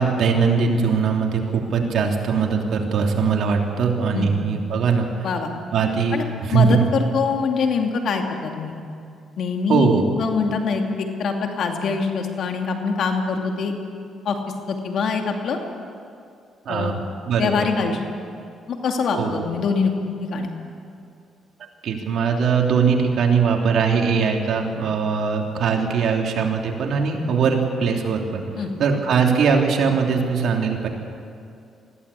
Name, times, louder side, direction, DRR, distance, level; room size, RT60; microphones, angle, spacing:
voice 1, 0.0-5.3 5.7-6.9 9.7-10.0 16.7-17.0 17.3-17.7 19.1-19.4 21.8-28.5 28.8-30.9, right 5 dB, 70° right, 1 dB, 3.1 m, -21 dB
voice 2, 6.5-8.8 9.4-13.7 14.2-14.4 14.7-15.6 16.7-17.0 17.4-18.0 18.7-19.9 20.3-20.5 28.6-28.7, left 5 dB, 65° left, 3 dB, 2.6 m, -24 dB
20.5 x 16.0 x 8.4 m, 2.5 s
cardioid pair, 90°, 0 cm